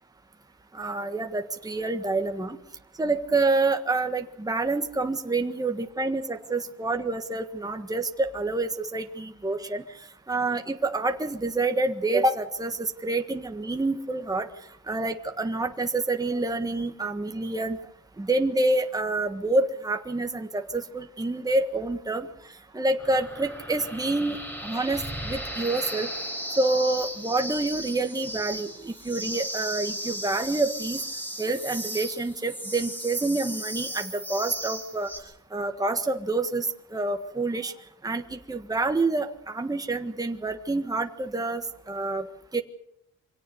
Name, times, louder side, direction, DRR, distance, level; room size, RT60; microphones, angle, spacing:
voice 1, 0.7-2.6 3.0-9.8 10.3-14.5 14.9-17.8 18.2-22.3 22.7-26.1 26.6-31.0 31.4-35.1 35.5-37.7 38.0-42.2 42.5-42.6, right 2 dB, 10° right, 5 dB, 1.6 m, -27 dB
sound 1, 23.0-35.2, right 1 dB, 5° left, 5.0 m, -36 dB
25.0 x 17.5 x 6.8 m, 0.76 s
cardioid pair, 90°, 30 cm